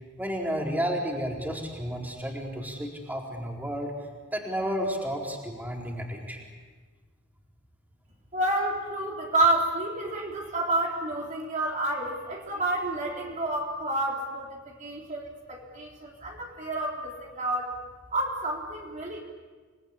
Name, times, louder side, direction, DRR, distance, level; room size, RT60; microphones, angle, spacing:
voice 1, 0.2-3.9 4.3-6.4, equal, 10° right, 0 dB, 4.2 m, -31 dB
voice 2, 8.3-17.7 18.1-19.2, right 1 dB, 40° right, -1 dB, 3.7 m, -29 dB
28.5 x 20.0 x 9.9 m, 1.5 s
head